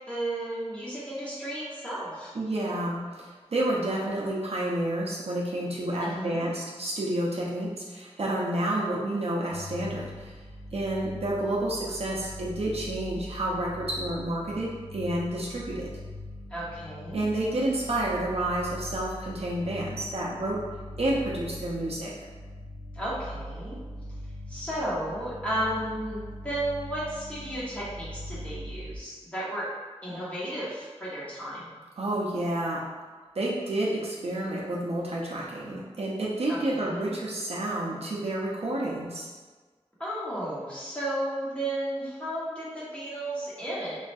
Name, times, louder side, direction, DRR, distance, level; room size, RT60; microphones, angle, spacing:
voice 1, 0.1-2.3 6.0-6.5 16.5-17.2 22.9-23.8 24.5-29.7 30.0-31.8 36.5-37.1 40.0-44.0, right 1 dB, 10° left, -9 dB, 1.1 m, -33 dB
voice 2, 2.3-10.4 10.7-15.9 17.1-20.6 21.0-22.1 32.0-32.8 33.3-39.3, right 1 dB, 65° right, -4 dB, 0.5 m, -30 dB
sound 1, 9.5-29.0, left 1 dB, 30° left, 0.3 m, -41 dB
3.1 x 2.3 x 2.6 m, 1.4 s
wide cardioid pair, 80°, 11 cm